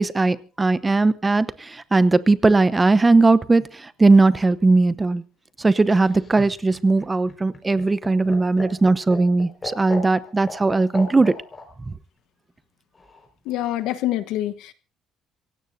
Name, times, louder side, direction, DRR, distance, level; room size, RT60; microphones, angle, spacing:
voice 1, 0.0-5.2 5.6-11.3 11.9-12.0, right 3 dB, 15° right, 0.8 m, -18 dB
Laughter, 6.0-11.7 12.9-13.6, left 2 dB, 20° left, 5.0 m, -36 dB
voice 2, 13.5-14.7, left 13 dB, 80° left, 1.1 m, -26 dB
26.5 x 16.5 x 2.7 m
cardioid pair, 130°, 0 cm